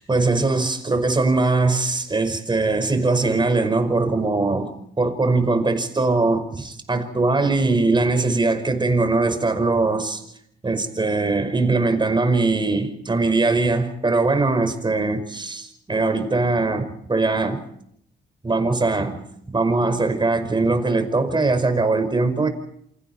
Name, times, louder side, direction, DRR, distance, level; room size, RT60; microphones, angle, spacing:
voice 1, 0.1-10.2 10.6-17.6 18.4-19.3 19.5-22.5, right 3 dB, 25° right, 5.3 m, -21 dB
28.5 x 25.5 x 4.5 m
cardioid pair, 90°, 20 cm